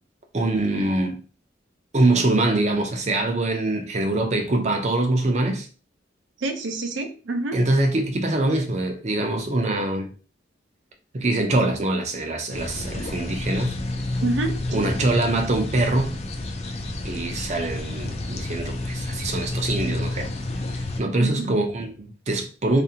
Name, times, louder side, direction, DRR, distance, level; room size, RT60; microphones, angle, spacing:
voice 1, 0.3-1.2 1.9-5.7 7.5-10.1 11.1-13.8 14.7-16.1 17.0-20.3 20.7-22.8, right 2 dB, 35° right, 0.5 m, -24 dB
voice 2, 6.4-7.6 14.2-15.0 21.2-21.5, right 2 dB, 85° right, 0.6 m, -28 dB
sound 1, 12.5-21.0, left 2 dB, 35° left, 0.4 m, -30 dB
2.6 x 2.5 x 2.7 m
head